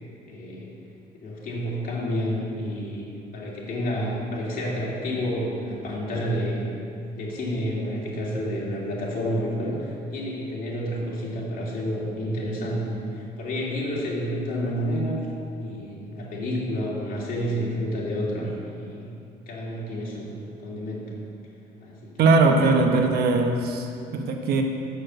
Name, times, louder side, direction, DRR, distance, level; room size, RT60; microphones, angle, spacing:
voice 1, 0.3-0.7 1.1-3.0 3.3-6.7 7.1-15.2 15.6-19.1 19.5-21.1 21.8-22.3, equal, 55° left, -4 dB, 2.7 m, -29 dB
voice 2, 22.2-24.6, right 3 dB, 70° right, 4 dB, 1.1 m, -20 dB
7.1 x 6.6 x 7.8 m, 2.6 s
cardioid pair, 110°, 17 cm